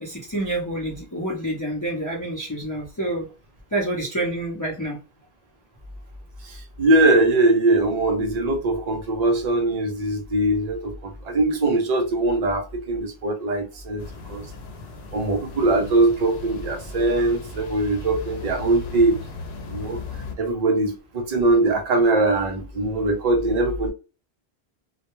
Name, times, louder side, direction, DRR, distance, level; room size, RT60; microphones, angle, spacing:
voice 1, 0.0-3.3 3.7-5.0, right 1 dB, 20° left, 0.6 m, -28 dB
voice 2, 6.4-14.5 15.1-19.1 19.7-20.0 20.4-23.9, right 2 dB, 50° right, 0.6 m, -21 dB
sound 1, 14.0-20.4, left 4 dB, 85° left, 0.8 m, -37 dB
2.2 x 2.1 x 2.9 m
omnidirectional pair, 1.0 m